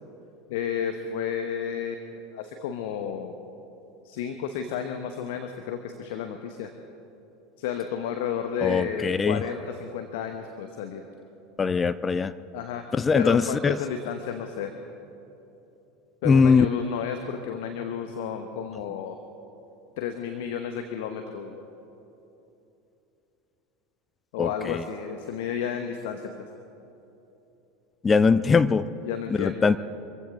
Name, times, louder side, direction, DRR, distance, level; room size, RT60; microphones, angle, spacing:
voice 1, 0.5-3.3 4.0-6.7 7.6-11.0 12.5-12.8 13.1-14.7 16.2-19.2 20.0-21.6 24.3-26.3 29.0-29.7, left 8 dB, 60° left, 6 dB, 1.0 m, -32 dB
voice 2, 8.6-9.4 11.6-12.3 12.9-13.8 16.2-16.7 24.4-24.8 28.0-28.9 29.3-29.8, left 5 dB, 20° left, 14 dB, 0.5 m, -21 dB
25.0 x 15.0 x 3.6 m, 2.9 s
figure-of-eight pair, 75°, 0 cm